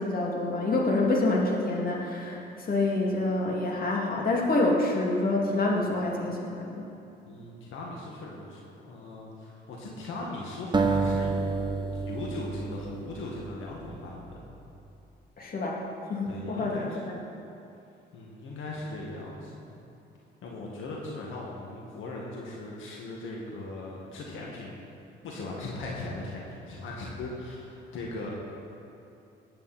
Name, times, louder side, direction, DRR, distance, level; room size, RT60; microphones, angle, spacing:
voice 1, 0.0-6.9 15.4-15.8 16.1-16.8 17.1-17.2, left 2 dB, 45° left, -2 dB, 2.7 m, -27 dB
voice 2, 7.3-14.5 16.3-17.0 18.1-19.8 20.4-24.9 25.2-28.3, left 2 dB, 80° left, -3 dB, 2.0 m, -39 dB
sound 1, 10.7-14.0, right 4 dB, 20° right, 1.0 m, -29 dB
19.5 x 8.6 x 4.4 m, 2.7 s
cardioid pair, 90°, 20 cm